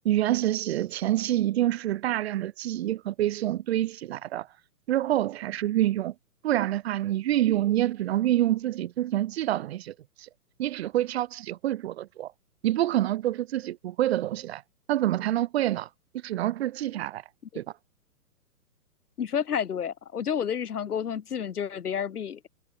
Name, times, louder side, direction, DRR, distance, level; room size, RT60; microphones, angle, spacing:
voice 1, 0.0-4.5 4.9-6.1 6.4-10.3 10.6-12.3 12.6-14.6 14.9-15.9 16.2-17.2 17.5-17.6, right 13 dB, 45° right, 1.0 m, -27 dB
voice 2, 19.2-22.5, left 8 dB, 75° left, 2.2 m, -30 dB
hypercardioid pair, 140°, 45 cm